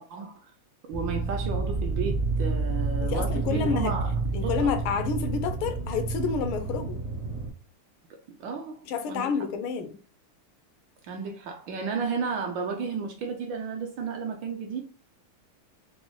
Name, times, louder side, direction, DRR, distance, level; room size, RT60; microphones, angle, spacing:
voice 1, 0.1-0.5 0.9-4.1 4.4-4.7 8.4-9.3 11.1-14.8, right 5 dB, 75° right, 1.2 m, -33 dB
sound 1, 0.9-7.5, right 4 dB, 50° right, 0.8 m, -29 dB
voice 2, 3.0-4.0 4.3-7.0 8.8-10.0, left 6 dB, 80° left, 1.4 m, -29 dB
5.2 x 2.0 x 3.1 m
omnidirectional pair, 2.4 m